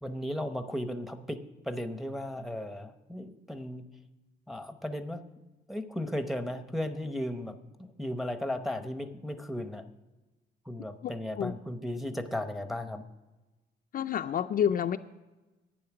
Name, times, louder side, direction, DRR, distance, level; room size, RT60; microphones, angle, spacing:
voice 1, 0.0-3.8 4.5-5.2 5.7-9.9 10.6-13.1, left 1 dB, ahead, 8 dB, 0.7 m, -35 dB
voice 2, 13.9-15.0, left 9 dB, 50° left, 7 dB, 0.4 m, -28 dB
11.0 x 9.5 x 5.9 m, 1.1 s
cardioid pair, 130°, 19 cm